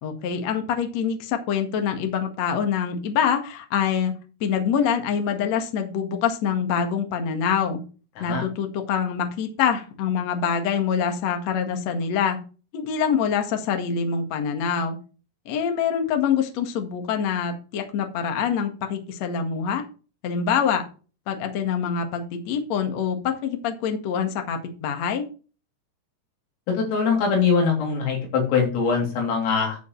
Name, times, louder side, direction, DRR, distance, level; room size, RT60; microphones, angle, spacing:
voice 1, 0.0-7.8 8.2-12.4 12.7-15.0 15.5-19.8 20.2-20.8 21.3-25.2, left 7 dB, 60° left, 5 dB, 1.8 m, -25 dB
voice 2, 26.8-29.8, left 5 dB, 90° left, 0 dB, 6.0 m, -22 dB
11.0 x 7.4 x 3.3 m, 0.34 s
omnidirectional pair, 5.7 m